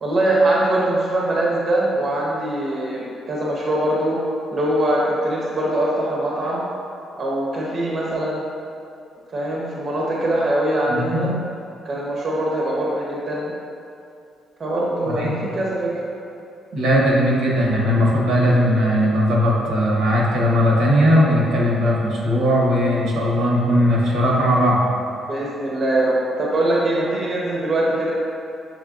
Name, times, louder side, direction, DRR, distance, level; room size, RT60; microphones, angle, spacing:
voice 1, 0.0-4.2 4.5-6.6 7.1-8.4 9.3-11.4 11.8-13.5 14.6-16.0 25.3-28.1, right 1 dB, 45° right, -4 dB, 0.8 m, -22 dB
voice 2, 16.7-24.8, equal, 85° right, -4 dB, 1.0 m, -18 dB
6.3 x 3.3 x 2.5 m, 2.6 s
cardioid pair, 90°, 0 cm